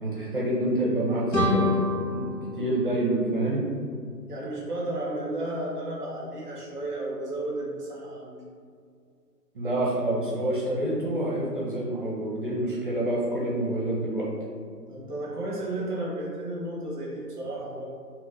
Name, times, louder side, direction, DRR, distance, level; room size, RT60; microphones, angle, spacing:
voice 1, 0.0-1.7 2.1-2.3 2.6-3.6 9.5-14.2, right 1 dB, 35° right, -4 dB, 0.7 m, -27 dB
sound 1, 1.3-4.1, left 2 dB, 85° left, 1.4 m, -28 dB
voice 2, 4.3-8.4 14.9-17.8, right 1 dB, 5° left, -6 dB, 0.6 m, -33 dB
5.5 x 2.9 x 2.6 m, 2.3 s
hypercardioid pair, 160°, 49 cm